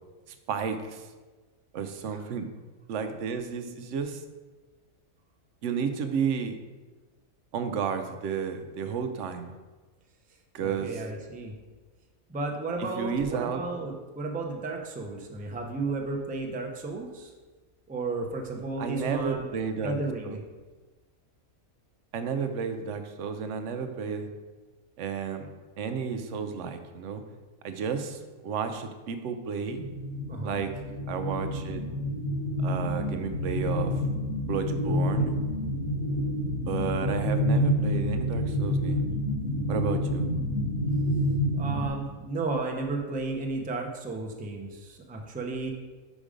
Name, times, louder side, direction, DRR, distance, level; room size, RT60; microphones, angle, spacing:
voice 1, 0.5-1.0 1.7-2.5 2.9-4.2 5.6-6.5 7.5-9.5 10.5-10.9 13.0-13.6 18.8-20.0 20.3-20.4 22.1-24.3 25.0-25.5 25.8-27.2 27.6-29.8 30.4-30.7 31.1-31.9 32.6-33.9 34.5-35.4 36.7-39.0 39.7-40.2, right 6 dB, 65° right, 7 dB, 0.9 m, -32 dB
voice 2, 10.6-11.5 12.3-17.3 17.9-19.5 19.8-20.4 30.3-30.6 41.5-45.7, right 3 dB, 15° right, 1 dB, 0.3 m, -33 dB
sound 1, 29.7-41.9, left 1 dB, 70° left, 1.2 m, -28 dB
5.2 x 5.1 x 5.0 m, 1.3 s
omnidirectional pair, 1.5 m